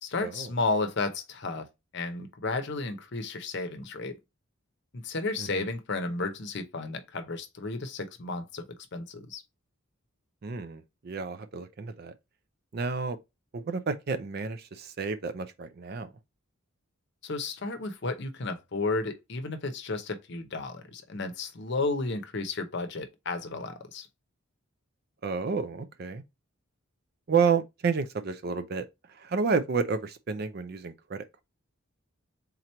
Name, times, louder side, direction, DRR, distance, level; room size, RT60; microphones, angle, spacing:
voice 1, 0.0-1.7 1.9-4.2 4.9-8.6 8.9-9.4 17.2-24.1, left 3 dB, 55° left, 0.7 m, -33 dB
voice 2, 10.4-12.1 12.7-13.2 13.5-16.1 25.2-26.2 27.3-28.9 29.2-31.4, right 5 dB, 45° right, 0.4 m, -30 dB
3.8 x 2.9 x 4.3 m
head